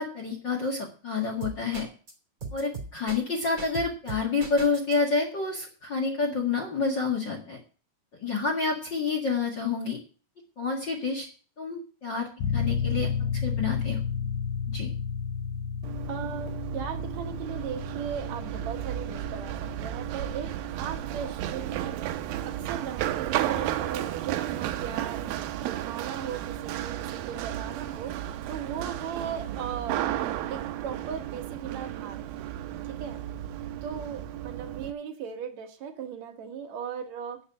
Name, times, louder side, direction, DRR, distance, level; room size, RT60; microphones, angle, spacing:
voice 1, 0.0-1.9 2.5-7.6 8.2-10.0 10.6-11.3 11.6-13.1 13.4-14.0 14.7-14.9, left 4 dB, 50° left, 1 dB, 1.4 m, -28 dB
sound 1, 1.4-2.1 2.4-4.9, right 4 dB, 25° right, 2.4 m, -37 dB
sound 2, 12.4-26.8, left 6 dB, 85° left, 1.7 m, -34 dB
Run, 15.8-34.9, right 12 dB, 85° right, 2.0 m, -33 dB
voice 2, 16.1-22.1 22.4-25.3 25.6-28.1 28.5-30.0 30.5-32.2 32.8-33.2 33.8-37.4, right 7 dB, 70° right, 4 dB, 1.7 m, -37 dB
10.0 x 6.6 x 8.4 m, 0.38 s
omnidirectional pair, 5.2 m